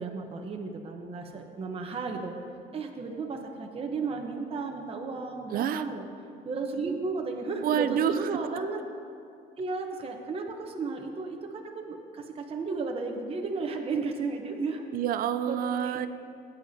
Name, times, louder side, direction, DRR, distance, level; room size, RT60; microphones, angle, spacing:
voice 1, 0.0-2.3 2.7-6.1 6.4-8.8 9.6-14.8 15.5-16.0, right 4 dB, 35° right, 2 dB, 1.0 m, -34 dB
voice 2, 5.5-5.8 7.6-8.3 14.9-16.1, right 9 dB, 60° right, 12 dB, 0.5 m, -28 dB
16.5 x 9.2 x 2.8 m, 2.4 s
cardioid pair, 110°, 17 cm